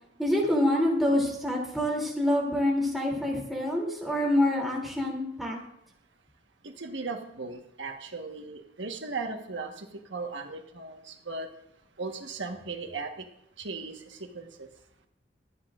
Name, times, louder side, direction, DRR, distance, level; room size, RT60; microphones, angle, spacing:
voice 1, 0.2-5.6, left 1 dB, ahead, -3 dB, 3.0 m, -26 dB
voice 2, 6.6-11.5 12.0-13.2 13.6-14.7, right 3 dB, 85° right, 4 dB, 1.4 m, -37 dB
24.5 x 9.9 x 2.5 m, 0.76 s
head